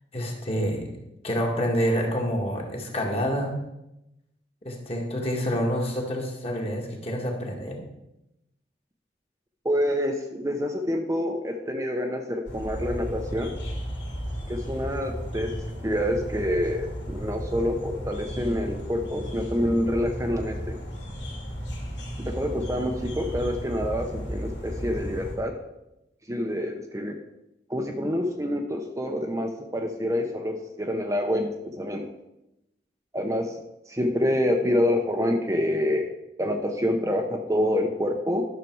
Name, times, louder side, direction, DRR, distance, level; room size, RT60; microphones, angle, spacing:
voice 1, 0.1-0.9 1.2-3.5 4.6-7.8, equal, 35° left, 0 dB, 1.8 m, -27 dB
voice 2, 9.6-13.5 14.5-15.5 15.8-20.8 22.2-25.5 26.3-27.2 27.7-32.1 33.1-33.6 33.9-36.1 36.4-38.4, left 1 dB, 15° right, 3 dB, 0.7 m, -27 dB
sound 1, 12.5-25.4, equal, 80° left, 2.7 m, -34 dB
12.0 x 6.7 x 4.6 m, 0.90 s
head